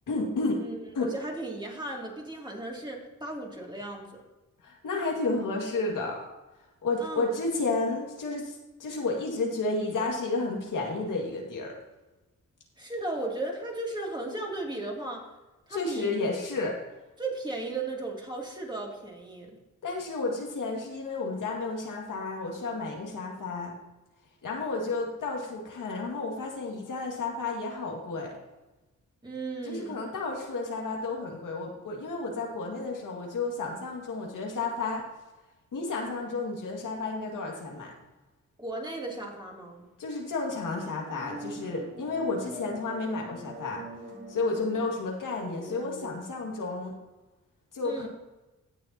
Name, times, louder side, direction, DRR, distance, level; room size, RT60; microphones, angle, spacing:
voice 1, 0.1-0.6 0.9-1.1 4.6-6.3 6.8-11.8 15.7-16.8 19.8-23.7 24.4-28.3 29.6-35.0 35.7-37.9 40.0-43.8 44.3-46.9 47.7-48.1, left 3 dB, 85° left, 0 dB, 2.1 m, -31 dB
voice 2, 0.6-4.2 7.0-7.3 12.8-15.3 15.7-16.1 17.2-19.6 29.2-30.0 38.6-39.8 47.8-48.1, right 2 dB, 15° right, -2 dB, 2.7 m, -36 dB
sound 1, 40.8-46.2, equal, 30° right, 3.5 m, -43 dB
17.0 x 6.6 x 2.9 m, 1.1 s
cardioid pair, 80°, 31 cm